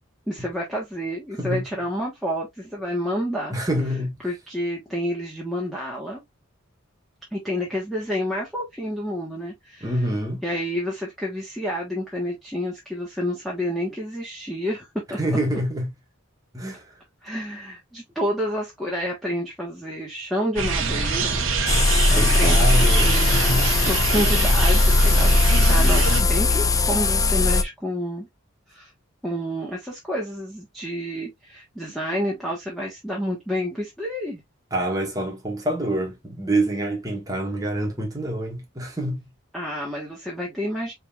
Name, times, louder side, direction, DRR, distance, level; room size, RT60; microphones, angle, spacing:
voice 1, 0.3-3.5 4.2-6.2 7.3-9.9 10.4-15.2 17.2-21.5 21.7-23.6 23.9-28.3 28.7-28.9 29.2-34.4 39.5-40.9, equal, ahead, 1.3 m, -29 dB
voice 2, 3.5-4.2 9.8-10.4 15.2-15.9 16.5-16.8 22.0-23.7 34.7-39.3, right 1 dB, 15° right, 1.6 m, -26 dB
sound 1, 20.6-26.2, right 4 dB, 75° right, 1.1 m, -24 dB
sound 2, 21.7-27.6, left 2 dB, 15° left, 0.3 m, -19 dB
5.2 x 3.4 x 2.4 m
head